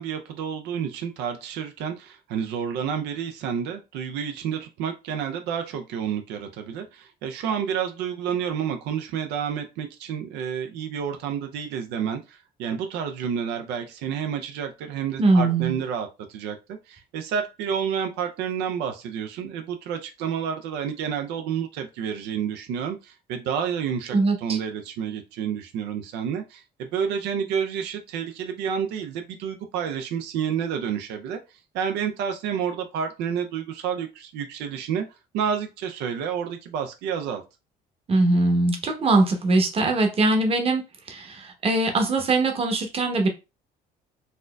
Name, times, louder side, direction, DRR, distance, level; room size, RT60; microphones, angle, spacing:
voice 1, 0.0-35.1 35.3-37.4, right 7 dB, 85° right, 0.5 m, -30 dB
voice 2, 15.2-15.8 24.1-24.6 38.1-40.8 41.1-43.3, right 2 dB, 35° right, 0.9 m, -21 dB
4.2 x 2.5 x 2.2 m
cardioid pair, 110°, 17 cm